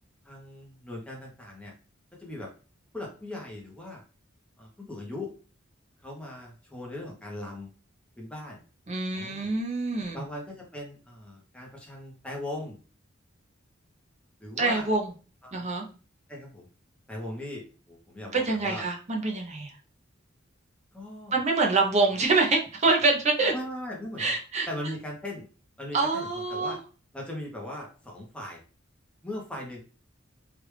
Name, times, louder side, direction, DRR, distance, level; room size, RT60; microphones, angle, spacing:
voice 1, 0.2-1.7 2.2-2.5 2.9-4.0 4.6-5.3 6.0-7.7 8.2-8.6 9.1-9.5 10.1-12.8 14.4-14.9 15.4-15.8 16.3-16.7 17.1-18.8 20.9-21.4 23.5-24.3 24.7-25.4 25.8-26.8 27.1-28.6 29.2-29.8, left 1 dB, 5° left, -2 dB, 0.8 m, -39 dB
voice 2, 8.9-10.2 14.6-15.1 15.5-15.8 18.3-19.7 21.3-23.5 24.2-24.7 25.9-26.8, right 3 dB, 35° right, 1 dB, 0.7 m, -25 dB
3.3 x 2.5 x 3.2 m, 0.37 s
head